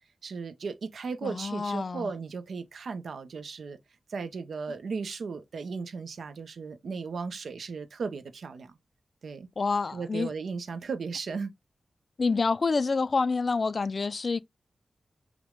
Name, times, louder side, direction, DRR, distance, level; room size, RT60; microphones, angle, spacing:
voice 1, 0.2-3.8 4.1-8.8 9.2-9.5 9.9-11.5, right 5 dB, 90° right, 0.6 m, -36 dB
voice 2, 1.2-2.1 9.6-10.3 12.2-14.4, left 4 dB, 45° left, 0.3 m, -27 dB
6.0 x 2.1 x 3.6 m
wide cardioid pair, 125°, 0 cm